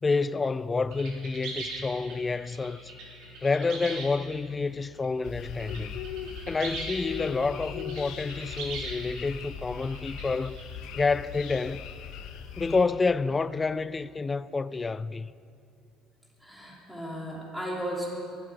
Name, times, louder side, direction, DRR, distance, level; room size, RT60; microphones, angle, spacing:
voice 1, 0.0-2.9 3.4-6.0 6.5-10.6 10.9-11.9 12.6-15.3, left 4 dB, 20° left, 0.3 m, -28 dB
sound 1, 0.8-13.6, equal, 55° right, 3.7 m, -55 dB
sound 2, 0.9-4.5 5.0-5.8 6.0-10.6, right 3 dB, 75° right, 4.0 m, -40 dB
sound 3, 5.2-12.8, left 8 dB, 70° left, 1.0 m, -39 dB
voice 2, 16.4-18.1, equal, ahead, 3.0 m, -35 dB
23.0 x 12.5 x 4.8 m
cardioid pair, 145°, 0 cm